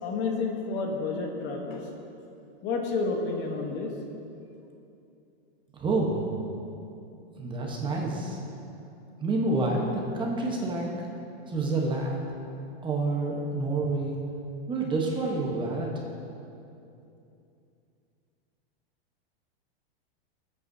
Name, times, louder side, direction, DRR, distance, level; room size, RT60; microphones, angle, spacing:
voice 1, 0.0-1.9 2.6-3.9, left 4 dB, 35° left, 2 dB, 1.1 m, -30 dB
voice 2, 5.7-6.3 7.3-8.4 9.2-10.9 11.5-12.2 12.8-14.2 14.7-15.9, right 2 dB, 15° right, -1 dB, 1.0 m, -28 dB
18.0 x 8.3 x 2.7 m, 2.7 s
supercardioid pair, 145°, 31 cm